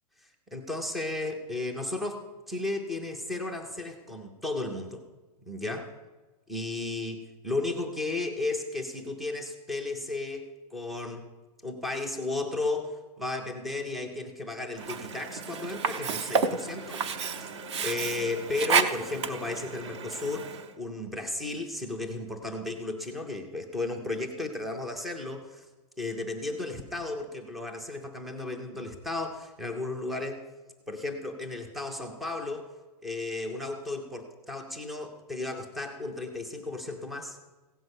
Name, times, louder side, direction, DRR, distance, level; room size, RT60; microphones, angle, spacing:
voice 1, 0.5-5.1 5.5-5.9 6.5-11.3 11.6-17.1 17.4-17.5 17.8-25.7 26.0-30.5 30.9-32.7 33.0-37.4, left 2 dB, ahead, 5 dB, 0.4 m, -34 dB
Sink (filling or washing), 14.8-20.7, right 5 dB, 45° right, 0.8 m, -31 dB
16.0 x 5.4 x 7.9 m, 1.2 s
supercardioid pair, 180°, 20 cm